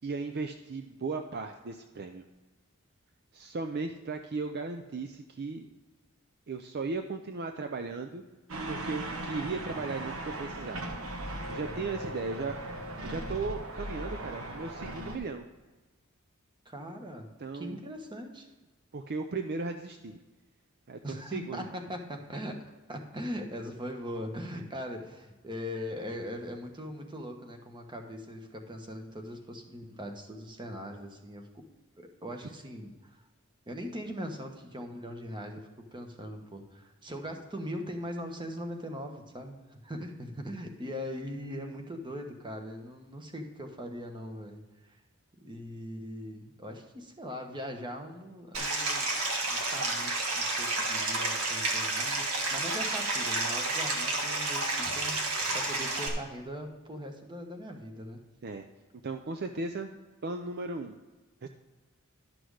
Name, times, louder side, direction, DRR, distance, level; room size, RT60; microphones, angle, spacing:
voice 1, 0.0-2.2 3.3-5.7 6.5-8.2 8.7-11.0 11.5-12.6 13.0-15.5 17.4-17.8 18.9-20.2 20.9-21.6 58.4-58.6 59.0-59.9 60.2-61.0 61.4-61.5, right 3 dB, 50° right, 6 dB, 0.5 m, -36 dB
sound 1, 8.5-15.2, right 1 dB, 70° right, 1.2 m, -38 dB
voice 2, 16.6-17.3 17.5-18.5 21.0-22.6 22.9-31.6 32.0-33.2 33.7-45.0 45.4-49.1 49.4-55.2 55.5-58.2, equal, 20° right, 4 dB, 1.1 m, -40 dB
Stream, 48.5-56.1, right 2 dB, 90° right, 1.6 m, -30 dB
11.5 x 6.1 x 4.8 m, 1.2 s
head